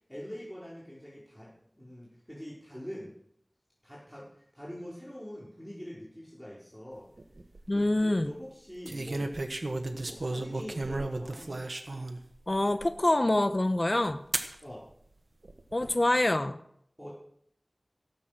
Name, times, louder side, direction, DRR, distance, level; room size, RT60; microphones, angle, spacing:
voice 1, 0.1-3.1 3.8-7.1 7.7-9.3 10.0-11.6 14.6-14.8 17.0-17.1, equal, 5° left, -6 dB, 4.9 m, -44 dB
sound 1, 7.2-7.6 8.9-12.2 12.8-12.9 14.3-14.5 15.4-15.9, right 2 dB, 80° right, 1.3 m, -34 dB
voice 2, 7.7-8.3 12.5-14.2 15.7-16.6, left 1 dB, 45° left, 10 dB, 0.9 m, -26 dB
16.5 x 8.3 x 6.1 m, 0.69 s
wide cardioid pair, 45°, 0 cm